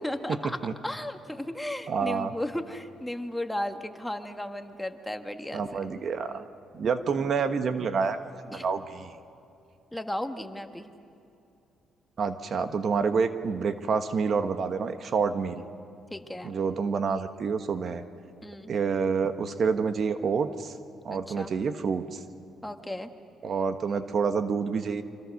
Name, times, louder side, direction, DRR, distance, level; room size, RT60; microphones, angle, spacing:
voice 1, 0.0-0.6 0.8-6.0 8.5-8.6 9.9-10.9 16.1-16.5 18.4-18.7 21.1-21.5 22.6-23.1, left 1 dB, 5° left, 6 dB, 1.6 m, -35 dB
voice 2, 1.9-2.3 5.5-6.4 6.7-8.2 8.4-9.1 12.2-15.6 16.4-18.0 18.7-20.7 21.0-22.2 23.4-25.0, right 5 dB, 55° right, 9 dB, 1.3 m, -28 dB
29.0 x 25.5 x 6.5 m, 2.7 s
cardioid pair, 90°, 0 cm